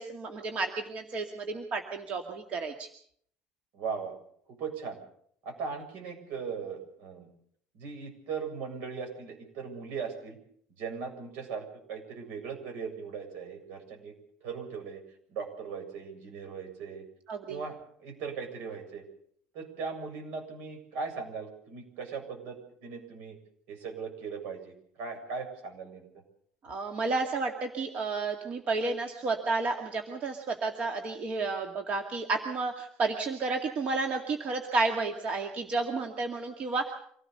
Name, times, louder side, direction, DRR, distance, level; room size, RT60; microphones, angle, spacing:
voice 1, 0.0-2.9 17.3-17.6 26.6-36.9, right 3 dB, 40° right, 4 dB, 2.1 m, -31 dB
voice 2, 3.7-4.1 4.5-5.0 5.4-7.3 7.7-10.4 10.8-14.1 14.4-15.0 15.3-17.0 17.5-19.0 19.5-23.4 23.7-26.1, right 5 dB, 70° right, 4 dB, 7.3 m, -39 dB
25.5 x 17.0 x 6.8 m, 0.65 s
cardioid pair, 150°, 3 cm